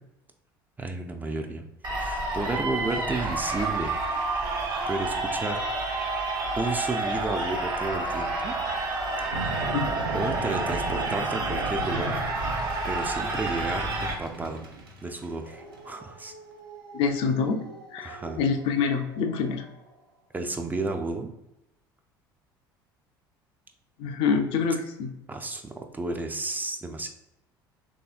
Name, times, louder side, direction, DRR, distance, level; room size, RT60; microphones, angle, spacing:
voice 1, 0.8-1.6 1.9-4.0 4.9-5.6 6.5-8.6 10.1-12.6 12.8-14.7 15.0-16.3 18.0-18.4 20.3-21.3 25.3-27.1, right 3 dB, 15° right, 4 dB, 0.4 m, -32 dB
sound 1, 1.8-14.1, right 2 dB, 30° right, 0.8 m, -29 dB
sound 2, 9.1-19.7, right 1 dB, 75° right, 0.5 m, -39 dB
voice 2, 16.9-17.6 17.9-19.6 24.0-25.1, left 5 dB, 50° left, 5 dB, 0.4 m, -26 dB
3.3 x 2.7 x 2.4 m, 0.89 s
figure-of-eight pair, 60°, 12 cm